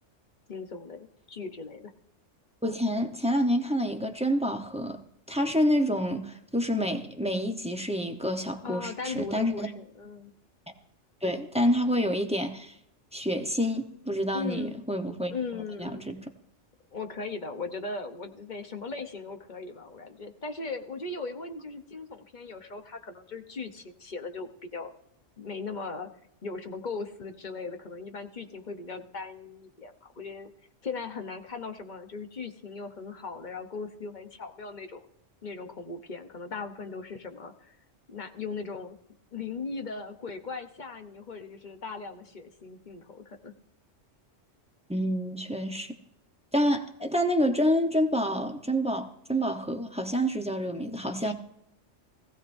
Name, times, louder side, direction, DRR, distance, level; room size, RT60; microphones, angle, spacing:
voice 1, 0.5-1.9 8.6-10.3 14.3-14.7 15.3-16.0 16.9-24.9 25.4-26.1 26.4-30.5 30.8-35.0 35.4-37.8 38.1-39.0 39.3-43.5 51.2-51.3, left 4 dB, 40° left, 7 dB, 1.0 m, -38 dB
voice 2, 2.6-5.0 5.3-9.7 11.2-12.7 13.1-15.3 15.8-16.2 44.9-46.0 46.5-51.3, equal, 5° right, 4 dB, 0.8 m, -28 dB
19.0 x 15.5 x 2.7 m, 0.76 s
omnidirectional pair, 1.3 m